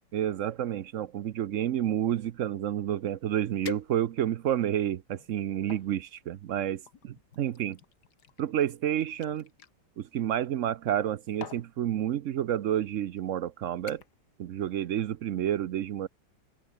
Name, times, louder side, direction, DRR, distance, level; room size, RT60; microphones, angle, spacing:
voice 1, 0.1-7.8 8.4-9.5 10.0-14.0 14.4-16.1, right 11 dB, 65° right, 0.8 m, -30 dB
sound 1, 3.6-4.4 5.0-5.9 6.9-9.7 10.8-11.1 11.4-11.7 12.6-12.8 13.2-13.5 13.9-14.3 14.6-15.0 15.3-15.4, left 8 dB, 65° left, 2.0 m, -46 dB
omnidirectional pair, 1.9 m